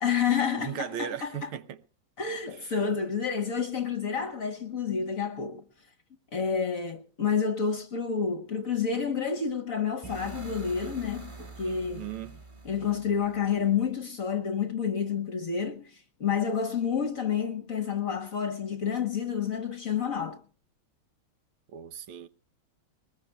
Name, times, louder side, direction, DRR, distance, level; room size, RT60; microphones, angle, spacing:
voice 1, 0.0-1.5 2.2-5.6 6.3-12.1 12.6-20.4, left 6 dB, 50° left, 1.2 m, -29 dB
voice 2, 0.6-1.8 2.5-2.8 11.6-12.4 21.7-22.3, right 9 dB, 75° right, 1.7 m, -38 dB
sound 1, 10.0-13.9, right 4 dB, 15° right, 2.2 m, -45 dB
21.5 x 20.0 x 2.3 m
omnidirectional pair, 2.4 m